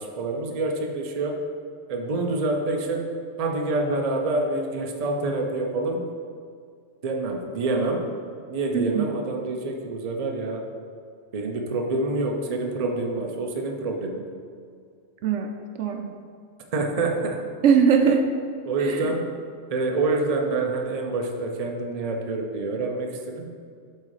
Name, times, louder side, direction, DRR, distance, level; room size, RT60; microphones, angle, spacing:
voice 1, 0.0-1.4 1.9-3.1 3.4-6.0 7.0-8.0 8.5-10.7 11.3-14.2 16.7-17.4 18.6-19.3 19.7-23.5, right 2 dB, 35° right, 2 dB, 0.7 m, -27 dB
voice 2, 8.7-9.1 15.2-16.2 17.6-18.3 18.8-19.1, right 6 dB, 70° right, 5 dB, 0.9 m, -21 dB
8.5 x 3.7 x 4.9 m, 2.2 s
omnidirectional pair, 1.3 m